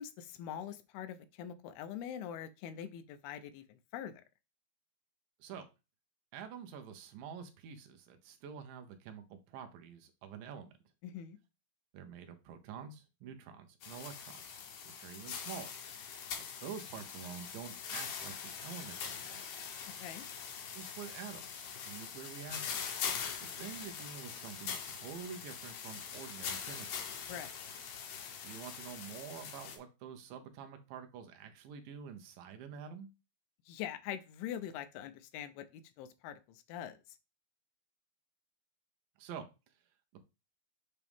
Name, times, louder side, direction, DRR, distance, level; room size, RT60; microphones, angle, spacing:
voice 1, 0.0-4.1 11.0-11.4 20.0-20.3 27.3-27.5 33.7-37.0, left 10 dB, 80° left, 11 dB, 2.6 m, -43 dB
voice 2, 6.3-10.7 11.9-14.6 15.0-15.7 16.6-19.5 20.7-23.0 23.4-27.1 28.4-33.1 39.2-39.5, right 7 dB, 75° right, 7 dB, 2.3 m, -47 dB
sound 1, 13.8-29.8, left 7 dB, 65° left, 2.1 m, -43 dB
8.3 x 3.7 x 3.5 m, 0.27 s
omnidirectional pair, 4.5 m